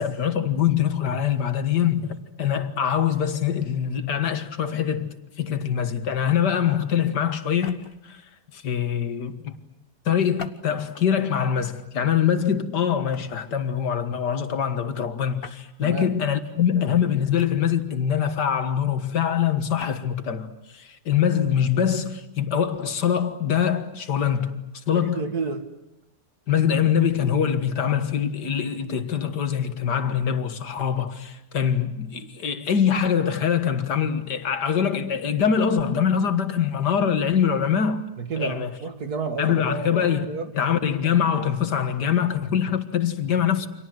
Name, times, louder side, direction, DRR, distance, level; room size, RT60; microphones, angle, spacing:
voice 1, 0.0-8.2 8.5-9.6 10.1-25.3 26.5-38.0 38.4-38.7 39.4-40.3 40.5-43.7, left 8 dB, 85° left, 2.2 m, -24 dB
Foley Tossing wood onto a woodpile, 7.5-8.1 10.3-11.1 11.7-12.0 13.1-13.5 15.4-15.7 17.4-17.9 19.6-20.0, left 5 dB, 40° left, 1.3 m, -42 dB
voice 2, 24.9-25.7 38.2-40.5, right 4 dB, 65° right, 2.5 m, -31 dB
29.5 x 26.0 x 7.7 m
omnidirectional pair, 1.7 m